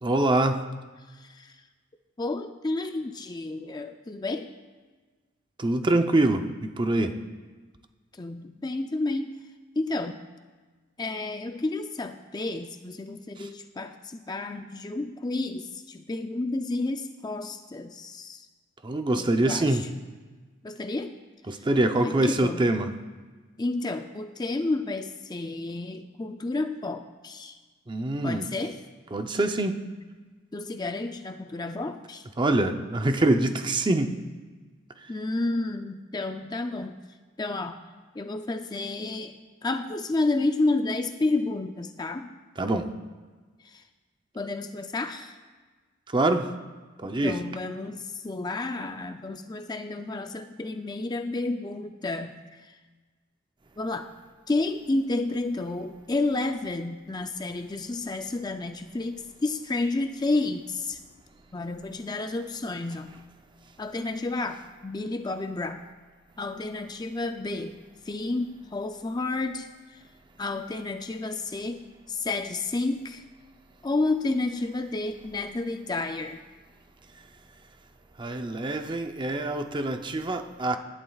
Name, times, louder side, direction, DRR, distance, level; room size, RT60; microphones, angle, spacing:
voice 1, 0.0-0.6 5.6-7.2 13.4-13.5 18.8-19.9 21.5-22.9 27.9-28.5 29.1-29.8 32.4-34.2 42.6-42.9 46.1-46.5 47.0-47.4 78.2-80.8, right 2 dB, 25° right, 0.6 m, -25 dB
voice 2, 1.1-1.6 2.2-4.5 8.1-9.4 9.8-10.2 11.0-18.5 19.1-19.7 20.6-21.1 22.0-22.6 23.6-27.6 28.2-28.8 30.5-32.3 35.1-37.0 37.4-37.8 38.1-42.3 43.6-43.8 44.3-45.4 47.2-52.8 53.8-54.1 54.5-61.0 61.5-63.2 63.8-65.8 66.4-67.8 68.1-70.0 70.4-73.2 73.8-76.4, left 2 dB, 20° left, 0.4 m, -31 dB
19.5 x 11.0 x 2.4 m
head